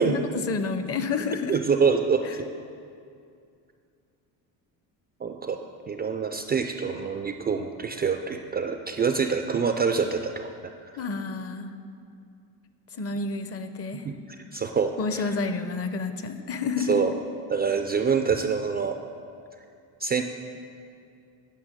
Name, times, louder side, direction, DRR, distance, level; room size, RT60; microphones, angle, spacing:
voice 1, 0.0-1.6 2.2-2.3 11.0-11.7 12.9-14.1 15.0-17.0, left 4 dB, 35° left, 9 dB, 0.7 m, -29 dB
voice 2, 1.5-2.5 5.2-5.6 5.9-10.5 14.1-14.2 14.5-15.3 16.9-17.1 17.5-19.0 20.0-20.2, right 5 dB, 25° right, 6 dB, 0.3 m, -25 dB
9.6 x 5.7 x 6.6 m, 2.4 s
cardioid pair, 105°, 42 cm